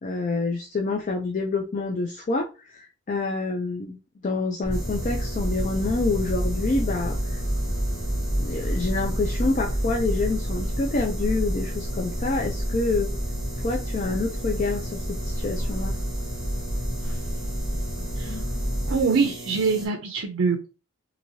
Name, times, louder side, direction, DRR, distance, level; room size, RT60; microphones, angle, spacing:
voice 1, 0.0-4.0 4.2-7.4 8.4-13.1 13.6-16.0, left 3 dB, 35° left, 1 dB, 0.4 m, -27 dB
sound 1, 4.6-19.0, equal, 65° left, 1.0 m, -29 dB
sound 2, 4.7-19.9, right 1 dB, 15° right, 1.2 m, -40 dB
voice 2, 18.9-20.7, right 5 dB, 75° right, 2 dB, 0.5 m, -24 dB
3.0 x 2.7 x 2.6 m, 0.31 s
head